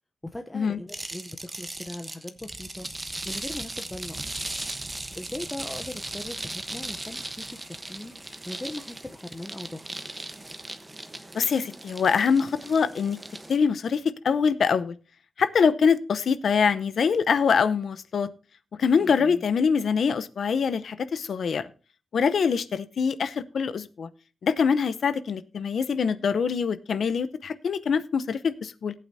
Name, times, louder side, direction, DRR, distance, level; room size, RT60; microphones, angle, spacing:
voice 1, 0.3-2.9 3.2-4.3 5.2-8.1 8.5-9.9 19.0-19.4, left 1 dB, 10° left, 5 dB, 0.8 m, -39 dB
sound 1, 0.9-13.6, right 2 dB, 15° right, 1.0 m, -38 dB
voice 2, 11.3-13.2 13.5-14.9 15.4-18.3 18.8-21.7 22.1-24.1 24.4-28.9, left 6 dB, 65° left, 14 dB, 0.7 m, -24 dB
18.5 x 8.5 x 2.7 m, 0.35 s
wide cardioid pair, 125°, 0 cm